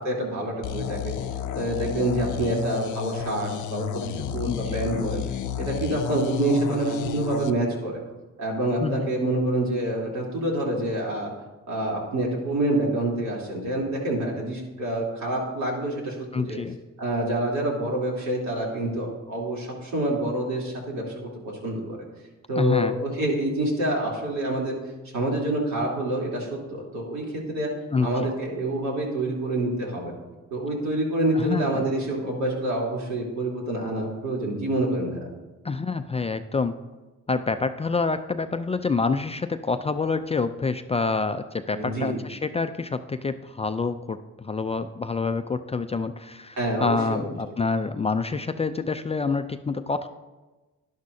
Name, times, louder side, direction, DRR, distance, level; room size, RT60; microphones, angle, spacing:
voice 1, 0.0-1.1 1.5-5.2 5.6-8.0 8.4-11.3 11.7-16.6 17.0-21.3 21.6-22.0 22.5-24.8 25.1-27.7 28.0-30.1 30.5-35.3 41.7-42.2 46.6-47.3, right 1 dB, 65° right, -3 dB, 3.4 m, -27 dB
sound 1, 0.6-7.5, left 9 dB, 85° left, 0.6 m, -31 dB
voice 2, 4.4-4.8 8.8-9.1 16.3-16.8 22.6-22.9 27.9-28.3 31.4-31.8 35.6-36.7 37.3-50.1, left 4 dB, 20° left, 9 dB, 0.4 m, -27 dB
11.5 x 11.0 x 2.7 m, 1.2 s
cardioid pair, 90°, 30 cm